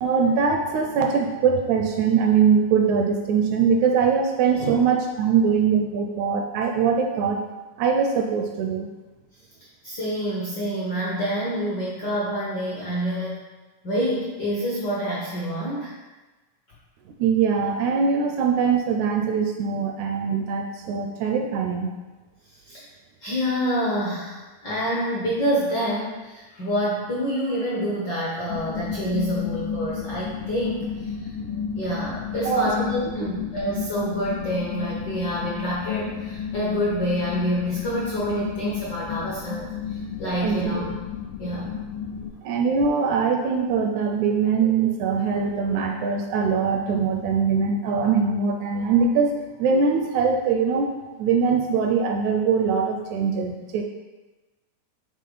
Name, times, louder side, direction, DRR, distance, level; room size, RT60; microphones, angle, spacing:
voice 1, 0.0-7.4 7.8-8.9 17.2-21.9 31.4-31.5 32.4-32.7 40.4-40.6 42.4-49.3 49.6-53.8, right 6 dB, 80° right, 3 dB, 1.7 m, -22 dB
voice 2, 9.8-13.4 13.8-15.9 21.1-21.2 22.6-22.8 23.2-31.3 31.7-40.8 41.4-41.7, equal, 70° left, -6 dB, 1.0 m, -27 dB
sound 1, 28.5-42.3, left 7 dB, 90° left, 2.3 m, -32 dB
8.4 x 3.6 x 3.9 m, 1.2 s
omnidirectional pair, 3.7 m